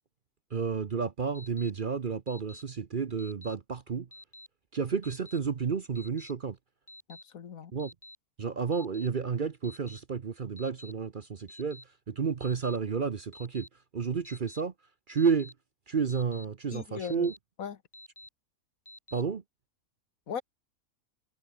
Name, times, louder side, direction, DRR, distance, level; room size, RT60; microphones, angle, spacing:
voice 1, 0.5-4.1 4.7-6.6 7.7-7.9 8.4-11.8 12.1-13.7 13.9-14.7 15.1-15.5 15.9-17.3 19.1-19.4, right 6 dB, 40° right, 0.9 m, -31 dB
Alarm, 1.3-1.7 2.3-2.6 3.2-3.5 4.1-4.5 5.0-5.4 5.9-6.3 6.9-7.2 7.8-8.2 8.7-9.1 9.6-10.0 10.6-10.9 11.5-11.8 12.4-12.8 13.3-13.7 14.2-14.6 15.2-15.5 16.1-16.4 17.0-17.4 17.9-18.3 18.9-19.2, left 1 dB, 15° left, 3.0 m, -50 dB
voice 2, 7.1-7.7 16.7-17.3 17.6-17.8 20.3-20.4, left 7 dB, 70° left, 1.7 m, -38 dB
omnidirectional pair, 1.5 m